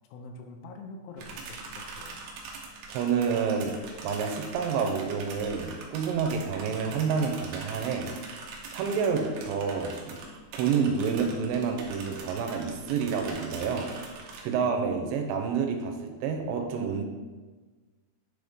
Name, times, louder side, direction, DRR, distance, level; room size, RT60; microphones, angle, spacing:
voice 1, 0.1-2.2 14.5-14.6, left 3 dB, 80° left, 4 dB, 2.5 m, -45 dB
sound 1, 1.2-14.4, right 4 dB, 75° right, 2.6 m, -43 dB
voice 2, 2.9-8.1 8.7-10.2 10.5-14.2 14.4-17.0, right 6 dB, 90° right, 4 dB, 3.0 m, -29 dB
9.3 x 3.9 x 3.5 m, 1.3 s
omnidirectional pair, 5.0 m